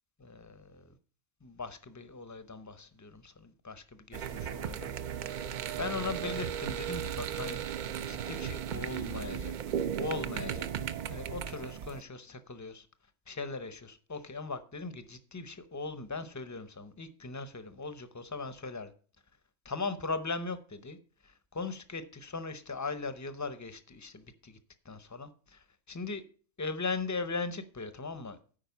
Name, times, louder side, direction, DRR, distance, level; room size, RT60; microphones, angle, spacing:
voice 1, 0.2-0.9 1.4-4.9 5.8-9.5 10.0-10.7 11.1-12.9 13.3-18.9 19.6-21.0 21.2-24.6 24.8-26.2 26.6-28.4, left 3 dB, 20° left, 0.6 m, -39 dB
sound 1, 4.1-12.0, right 9 dB, 60° right, 0.5 m, -36 dB
8.9 x 5.1 x 6.8 m
omnidirectional pair, 1.2 m